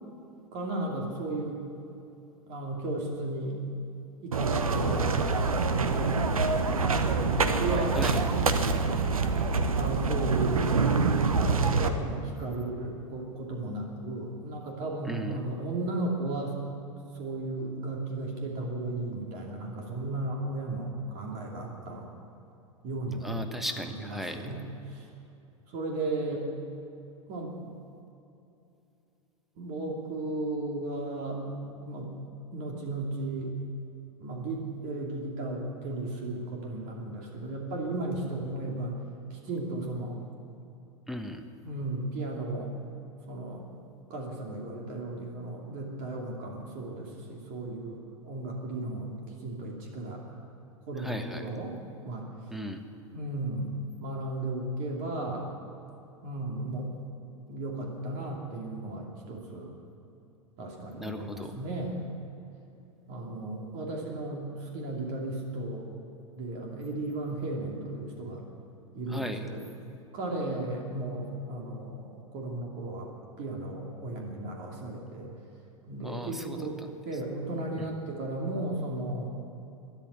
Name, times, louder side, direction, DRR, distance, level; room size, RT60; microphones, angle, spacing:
voice 1, 0.5-1.6 2.5-3.6 4.2-5.1 5.9-8.0 9.7-10.7 11.4-16.6 17.1-22.0 22.8-23.3 23.8-24.6 24.9-25.1 25.7-26.5 27.3-27.8 29.6-32.2 32.5-33.5 34.2-39.0 39.3-40.2 41.6-42.7 43.3-43.7 44.1-48.0 48.2-49.1 49.4-50.2 50.9-51.8 52.0-52.3 53.1-55.5 56.2-56.9 57.5-59.7 60.6-62.0 63.1-65.9 66.3-68.4 68.9-69.6 70.1-73.1 73.4-75.3 75.9-76.8 77.0-79.3, right 2 dB, 50° right, -1 dB, 2.7 m, -35 dB
sound 1, 4.3-11.9, right 4 dB, 85° right, 0.9 m, -26 dB
voice 2, 7.8-8.2 15.1-15.5 23.2-24.5 41.1-41.4 51.0-51.5 52.5-52.8 60.9-61.6 69.1-69.5 76.0-76.9 77.8-77.9, equal, ahead, 6 dB, 1.3 m, -37 dB
13.0 x 11.0 x 9.4 m, 2.8 s
hypercardioid pair, 95°, 17 cm